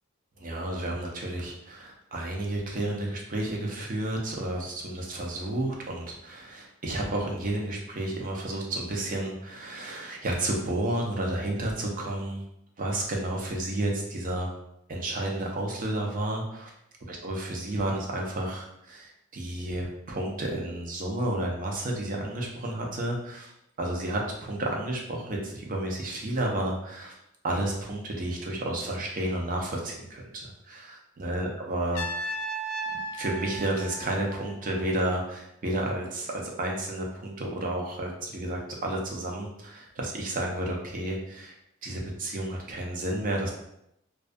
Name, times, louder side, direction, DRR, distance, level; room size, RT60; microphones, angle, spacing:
voice 1, 0.4-12.4 12.8-14.5 14.9-16.7 17.1-23.5 23.8-27.2 27.4-32.4 32.9-41.6 41.8-43.5, right 1 dB, 40° right, 0 dB, 0.5 m, -31 dB
Trumpet, 31.9-34.9, right 1 dB, 80° left, 0.4 m, -35 dB
2.3 x 2.2 x 2.5 m, 0.80 s
head